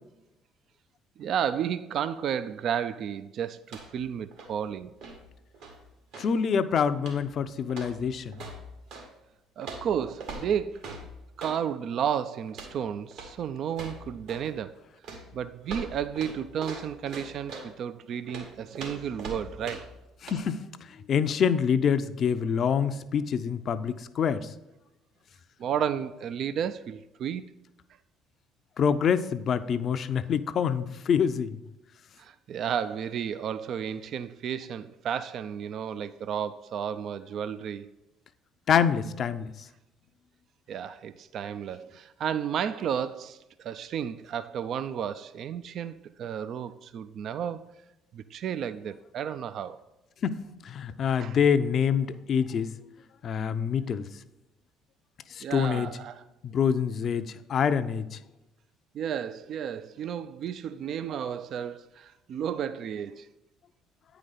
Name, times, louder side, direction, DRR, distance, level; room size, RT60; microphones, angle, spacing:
voice 1, 1.2-4.9 9.6-11.0 11.4-14.8 15.3-19.9 25.6-27.5 32.2-37.9 40.7-47.7 48.1-49.8 51.2-51.4 55.4-56.2 58.9-63.3, right 8 dB, 55° right, 0.3 m, -32 dB
sound 1, 3.6-4.1 4.3-6.4 7.0-7.4 7.7-9.1 9.6-11.6 12.5-12.8 13.1-13.4 13.7-14.5 15.0-17.7 18.3-20.0 20.3-20.4, right 3 dB, 75° right, 1.8 m, -42 dB
voice 2, 6.2-8.4 20.2-20.6 21.1-24.5 28.8-31.6 38.7-39.5 50.2-52.7 53.2-54.1 55.3-55.9 56.4-58.2, left 7 dB, 50° left, 0.5 m, -26 dB
9.0 x 5.0 x 4.1 m
hypercardioid pair, 60°, 0 cm